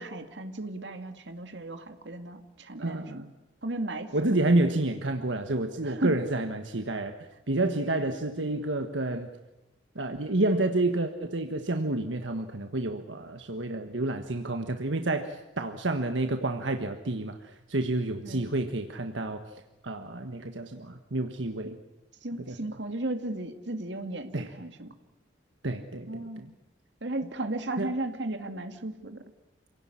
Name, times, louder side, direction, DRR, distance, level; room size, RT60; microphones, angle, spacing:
voice 1, 0.0-3.2 3.6-4.2 5.8-6.2 18.2-18.5 21.6-21.8 22.2-24.9 26.1-26.5 27.0-29.2, right 2 dB, 70° right, 7 dB, 2.3 m, -35 dB
voice 2, 2.8-3.3 4.1-7.1 7.5-9.3 9.9-19.4 19.8-21.8 22.5-22.6 24.3-24.5 25.6-26.5 27.8-27.9, right 2 dB, 90° right, 6 dB, 1.5 m, -29 dB
28.0 x 18.0 x 9.9 m, 0.98 s
head